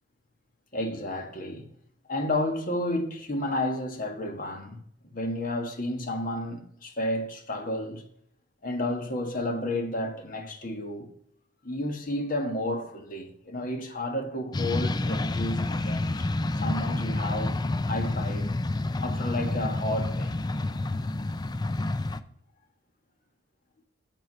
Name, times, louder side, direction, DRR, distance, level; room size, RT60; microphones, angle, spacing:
voice 1, 0.7-1.7 2.1-4.8 5.1-8.0 8.6-11.1 11.6-16.3 16.6-17.6 17.9-18.5 19.0-20.4, left 1 dB, 40° left, 1.5 m, -31 dB
sound 1, 14.5-22.2, left 2 dB, 20° left, 0.4 m, -29 dB
8.3 x 7.8 x 5.5 m
head